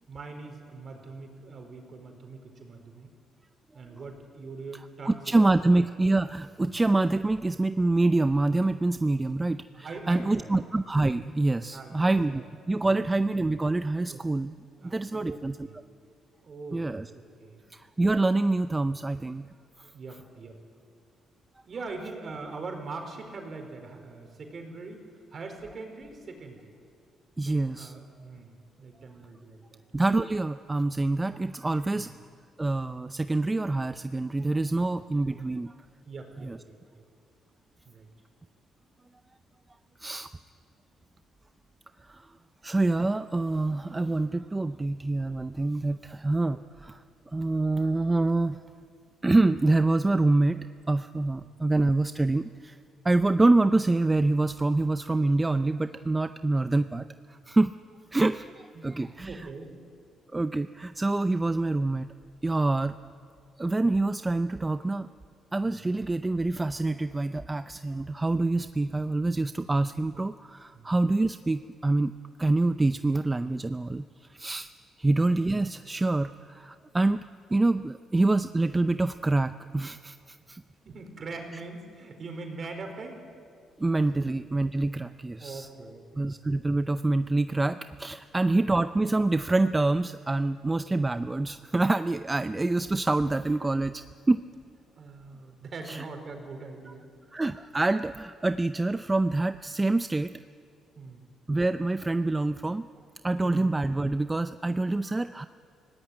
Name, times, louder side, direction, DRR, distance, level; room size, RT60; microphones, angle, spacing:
voice 1, 0.1-3.1 3.7-5.2 5.6-5.7 9.8-10.6 11.7-12.4 12.8-13.1 14.1-14.2 14.8-15.8 16.4-17.6 19.9-20.6 21.7-26.8 27.4-29.8 31.9-32.1 34.5-34.6 36.0-37.0 37.8-38.1 51.3-51.4 58.1-58.3 58.7-59.8 65.6-65.8 70.7-70.9 75.0-75.2 80.8-83.3 84.1-84.2 85.4-86.2 88.4-88.7 95.0-97.1 101.0-101.2 103.4-103.7, right 3 dB, 45° right, 4 dB, 4.6 m, -42 dB
voice 2, 5.1-12.4 12.7-14.5 14.8-15.7 16.7-17.1 17.7-19.5 19.8-19.9 27.4-27.9 29.9-32.1 32.6-35.7 36.4-36.6 40.0-40.3 42.0-42.3 42.6-48.6 49.2-50.6 50.9-52.8 53.0-57.7 58.1-59.5 60.3-62.1 62.4-62.9 63.6-65.1 65.5-72.1 72.4-74.7 75.0-77.2 77.5-80.6 83.8-85.7 86.2-94.4 95.9-96.0 97.3-100.3 101.5-102.9 103.2-105.5, right 2 dB, 20° right, 11 dB, 0.5 m, -26 dB
25.0 x 17.5 x 9.6 m, 2.3 s
cardioid pair, 90°, 0 cm